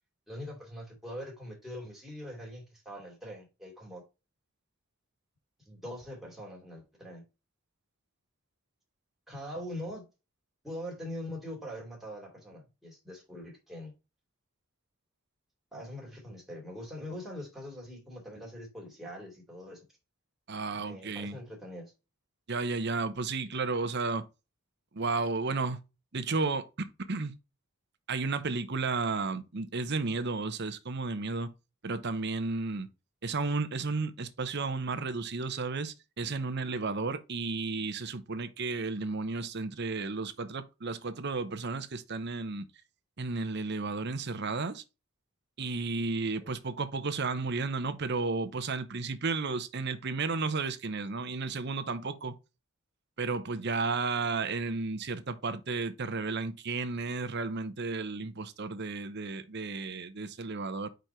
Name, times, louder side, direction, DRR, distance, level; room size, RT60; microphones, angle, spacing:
voice 1, 0.3-4.0 5.6-7.2 9.3-10.0 10.6-13.9 15.7-19.8 20.7-21.9 46.4-46.5, equal, ahead, 2.7 m, -43 dB
voice 2, 20.5-21.4 22.5-24.3 24.9-25.8 26.1-27.3 28.1-31.5 31.8-32.9 33.2-42.7 43.2-44.8 45.6-52.4 53.2-60.9, right 3 dB, 55° right, 0.8 m, -33 dB
5.2 x 4.7 x 4.5 m
head